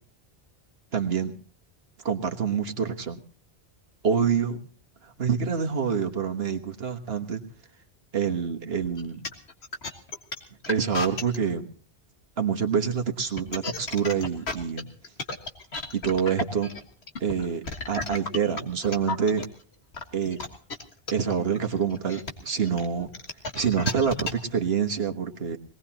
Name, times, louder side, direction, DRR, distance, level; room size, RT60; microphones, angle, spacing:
voice 1, 0.9-1.3 2.0-3.2 4.0-4.6 5.0-7.4 8.1-9.2 10.7-11.7 12.4-14.9 15.9-16.7 17.2-19.4 20.1-20.4 21.1-23.1 23.5-25.6, right 7 dB, 65° right, 4 dB, 1.5 m, -26 dB
sound 1, 8.8-11.4 13.2-19.4 19.9-24.5, left 3 dB, 75° left, 2.0 m, -33 dB
22.5 x 18.5 x 2.9 m, 0.42 s
omnidirectional pair, 1.1 m